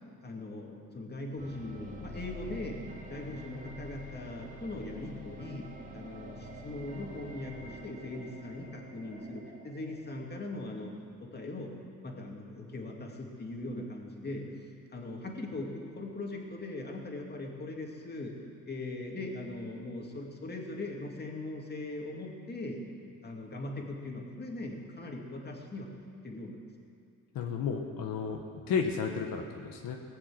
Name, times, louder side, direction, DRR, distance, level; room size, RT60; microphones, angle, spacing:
voice 1, 0.2-2.8 3.1-10.9 11.2-11.7 12.0-14.5 14.9-18.3 18.6-22.8 23.2-25.9 26.2-26.6, left 2 dB, 30° left, 0 dB, 2.5 m, -40 dB
sound 1, 1.4-10.4, equal, 25° right, 2.3 m, -47 dB
voice 2, 27.3-28.4 28.7-30.0, left 6 dB, 75° left, 2 dB, 1.3 m, -32 dB
19.0 x 7.5 x 7.9 m, 2.4 s
cardioid pair, 95°, 34 cm